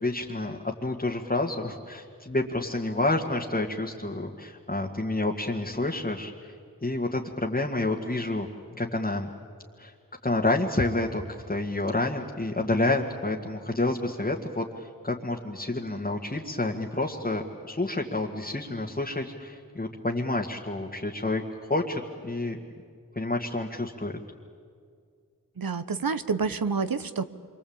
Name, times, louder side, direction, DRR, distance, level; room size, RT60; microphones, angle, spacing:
voice 1, 0.0-6.5 6.8-8.5 8.8-9.3 9.8-9.9 10.2-11.2 11.5-22.6 23.2-24.1, left 2 dB, 25° left, -1 dB, 1.9 m, -29 dB
voice 2, 25.6-27.2, right 5 dB, 70° right, 12 dB, 1.1 m, -28 dB
27.5 x 24.5 x 8.8 m, 2.2 s
wide cardioid pair, 50°, 36 cm